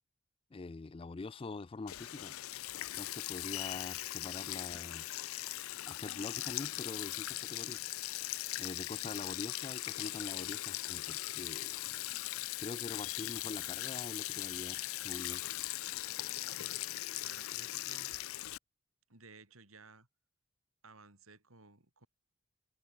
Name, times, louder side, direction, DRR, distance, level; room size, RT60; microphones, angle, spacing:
voice 1, 0.5-2.4 2.9-5.3 5.9-7.8 8.6-11.8 12.6-15.4, left 3 dB, 25° left, 0.3 m, -44 dB
Sink (filling or washing), 1.9-18.6, left 16 dB, 85° left, 0.5 m, -40 dB
voice 2, 17.2-18.1 19.1-20.1 20.8-22.1, right 3 dB, 85° right, 5.9 m, -57 dB
head